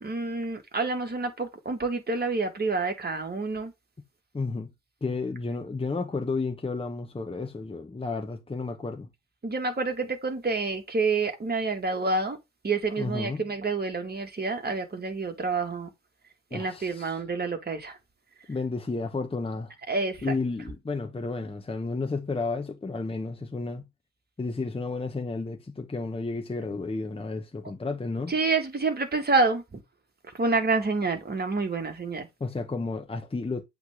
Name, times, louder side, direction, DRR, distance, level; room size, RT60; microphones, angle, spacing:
voice 1, 0.0-3.7 9.4-12.4 12.6-15.9 16.5-17.9 19.9-20.4 28.3-29.6 30.4-32.3, right 3 dB, 25° right, 1.9 m, -28 dB
voice 2, 4.3-4.7 5.0-9.1 13.0-13.5 16.5-17.2 18.5-19.7 20.2-23.8 24.4-28.3 32.4-33.6, left 3 dB, 15° left, 1.1 m, -32 dB
7.8 x 3.6 x 3.6 m
hypercardioid pair, 55°, 35 cm